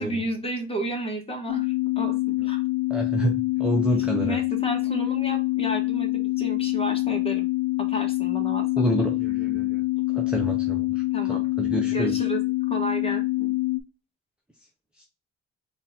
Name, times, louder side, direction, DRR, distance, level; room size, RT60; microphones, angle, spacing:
voice 1, 0.0-2.6 4.2-7.5 7.9-8.6 11.1-11.4 11.9-12.4 12.7-13.5, right 1 dB, 20° left, 2 dB, 1.5 m, -32 dB
sound 1, 1.5-13.8, left 21 dB, 90° left, 0.5 m, -25 dB
voice 2, 2.9-4.4 8.8-12.3 15.0-15.1, right 1 dB, 5° right, 1 dB, 0.7 m, -29 dB
3.9 x 2.7 x 3.9 m, 0.29 s
cardioid pair, 90°, 30 cm